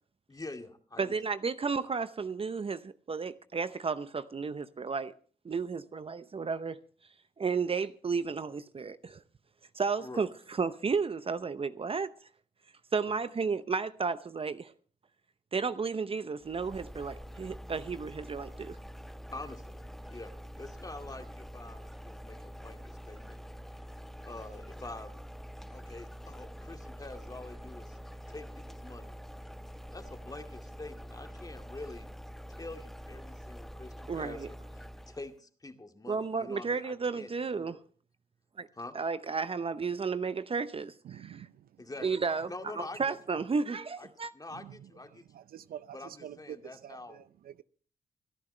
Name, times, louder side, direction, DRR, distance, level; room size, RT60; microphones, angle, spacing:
voice 1, 0.3-1.2 10.0-10.2 13.1-13.2 19.3-23.4 24.2-25.1 25.7-28.0 28.3-29.1 29.9-32.1 32.6-37.8 38.8-38.9 41.8-42.1 42.5-43.2 44.0-44.1 44.3-45.2 45.9-47.2, left 2 dB, 25° left, 2.2 m, -46 dB
voice 2, 1.0-5.1 5.4-6.8 7.4-9.2 9.7-12.1 12.9-14.7 15.5-18.8 34.1-34.5 36.1-37.8 38.6-38.7 38.9-41.5 42.0-44.3, right 5 dB, 35° right, 0.8 m, -33 dB
sound 1, 16.4-35.3, equal, ahead, 0.7 m, -46 dB
voice 3, 41.0-41.7 44.5-44.9 45.3-47.6, right 10 dB, 70° right, 0.6 m, -47 dB
25.0 x 10.5 x 3.3 m
supercardioid pair, 60°, 16 cm